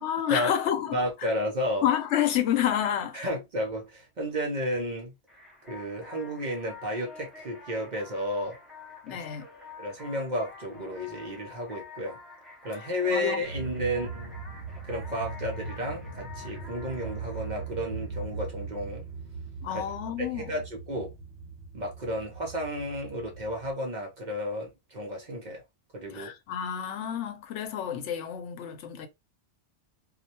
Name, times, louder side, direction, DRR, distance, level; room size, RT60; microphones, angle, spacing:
voice 1, 0.0-1.0 1.8-3.3 9.0-9.5 13.1-13.4 19.6-20.6 26.1-29.1, left 10 dB, 80° left, 0.9 m, -29 dB
voice 2, 0.9-1.9 3.1-5.1 5.7-8.6 9.1-9.2 9.8-12.2 12.6-14.3 14.8-19.0 19.7-19.8 20.2-21.1 21.7-25.6 25.9-26.3, equal, 50° right, 0.6 m, -32 dB
sound 1, 5.3-18.7, left 4 dB, ahead, 0.4 m, -48 dB
sound 2, 13.4-23.7, right 4 dB, 75° right, 0.9 m, -40 dB
2.3 x 2.1 x 2.7 m
omnidirectional pair, 1.2 m